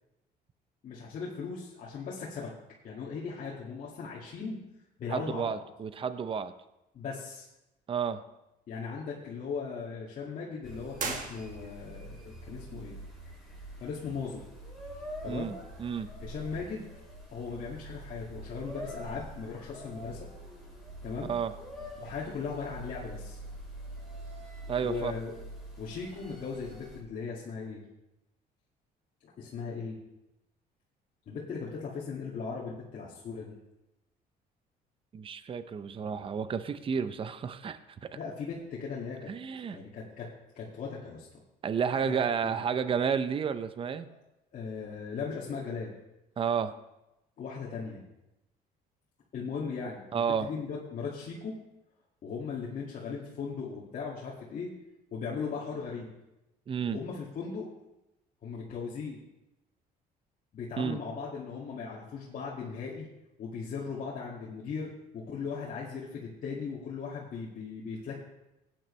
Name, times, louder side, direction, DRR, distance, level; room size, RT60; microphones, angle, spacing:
voice 1, 0.8-2.5 2.8-4.6 5.0-5.6 6.9-7.5 8.7-13.0 13.8-14.4 15.2-15.5 16.2-16.8 17.3-20.3 21.0-21.3 22.0-23.4 24.8-25.3 25.8-27.8 29.2-30.0 31.3-33.5 38.1-39.3 39.7-40.3 40.5-41.3 41.9-42.6 44.1-44.2 44.5-45.9 47.4-48.0 49.3-51.6 52.2-54.7 55.1-56.1 56.9-57.7 58.4-59.2 60.5-63.1 63.4-68.2, left 5 dB, 50° left, -6 dB, 2.1 m, -38 dB
voice 2, 5.1-6.5 7.9-8.2 15.3-15.5 15.8-16.1 21.3-21.5 24.7-25.1 35.1-38.1 39.3-39.8 41.6-44.1 46.4-46.7 50.1-50.5 56.7-57.0 60.8-61.0, right 7 dB, 30° right, 12 dB, 0.6 m, -31 dB
sound 1, 10.6-27.0, right 1 dB, ahead, 4.2 m, -45 dB
sound 2, 11.0-12.0, right 5 dB, 50° right, 1.7 m, -37 dB
16.5 x 9.1 x 3.3 m, 0.93 s
cardioid pair, 110°, 17 cm